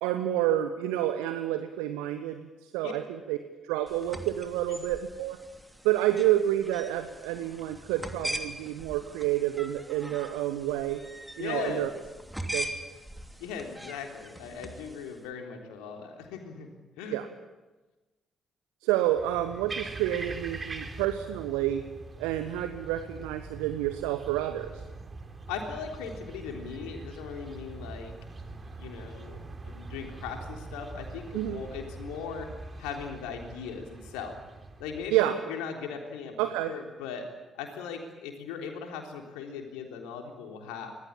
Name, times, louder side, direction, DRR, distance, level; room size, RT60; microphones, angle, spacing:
voice 1, 0.0-3.0 3.3-3.4 3.6-5.4 5.8-11.0 11.4-11.9 12.5-12.7 17.1-17.3 18.8-21.8 22.2-24.8 31.3-31.6 35.1-35.4 36.4-36.7, right 13 dB, 70° right, 9 dB, 1.1 m, -29 dB
sound 1, 3.9-15.2, right 1 dB, 5° right, 3.0 m, -41 dB
voice 2, 11.4-11.9 13.4-16.7 17.0-17.2 25.5-28.1 28.8-32.5 32.8-34.4 34.8-36.4 36.7-37.3 37.6-40.9, left 6 dB, 65° left, 3 dB, 3.6 m, -38 dB
sound 2, 19.2-35.2, right 3 dB, 30° right, 3.6 m, -43 dB
26.0 x 19.5 x 8.7 m, 1.2 s
figure-of-eight pair, 40°, 0 cm